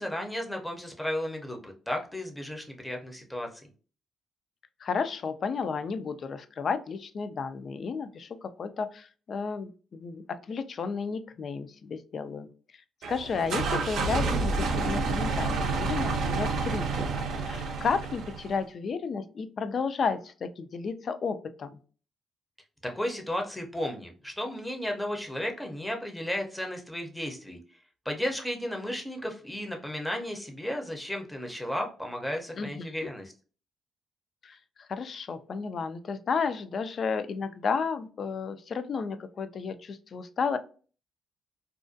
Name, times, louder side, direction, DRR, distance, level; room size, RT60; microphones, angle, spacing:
voice 1, 0.0-3.7 22.8-27.6 28.1-33.3, left 1 dB, 5° left, 2 dB, 0.6 m, -34 dB
voice 2, 4.8-12.5 13.1-21.7 32.6-32.9 34.4-40.6, left 5 dB, 50° left, 11 dB, 0.3 m, -32 dB
sound 1, 13.0-18.6, right 3 dB, 70° right, 0.4 m, -29 dB
2.4 x 2.2 x 2.5 m, 0.38 s
cardioid pair, 90°, 0 cm